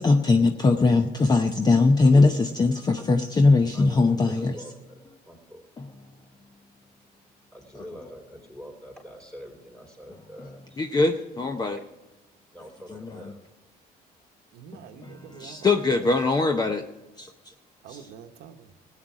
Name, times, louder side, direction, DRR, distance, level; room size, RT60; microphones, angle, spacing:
voice 1, 0.0-4.6 5.8-6.5 7.7-7.8 10.4-10.5 10.8-11.8 12.9-13.3 15.0-16.8 17.2-17.5 17.9-18.0, left 3 dB, 25° left, 0.7 m, -22 dB
voice 2, 3.7-5.6 7.5-10.8 12.5-13.4, equal, 5° left, 3.5 m, -44 dB
voice 3, 14.5-16.1 17.8-18.8, right 8 dB, 80° right, 1.0 m, -45 dB
17.0 x 9.1 x 4.8 m
cardioid pair, 110°, 17 cm